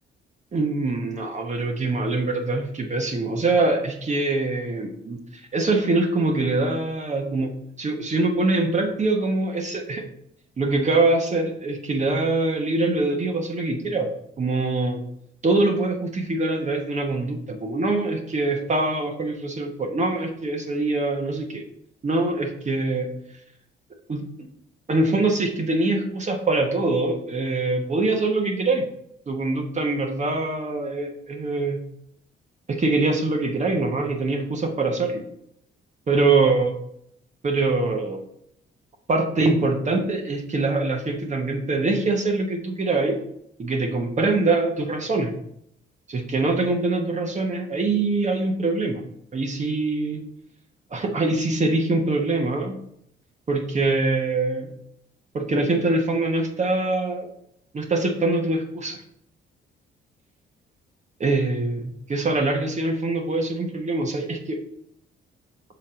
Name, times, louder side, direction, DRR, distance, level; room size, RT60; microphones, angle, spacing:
voice 1, 0.5-7.5 7.8-10.0 10.6-14.1 14.4-15.0 15.4-21.6 22.0-23.1 24.1-24.2 24.9-28.9 29.3-31.8 32.7-35.3 36.1-36.8 37.4-38.2 39.1-43.2 43.6-45.3 46.1-49.0 49.3-50.2 50.9-52.8 53.5-54.7 55.3-57.3 57.7-59.0 61.2-64.6, right 2 dB, 35° right, 3 dB, 1.1 m, -23 dB
5.9 x 4.1 x 5.0 m, 0.75 s
cardioid pair, 90°, 20 cm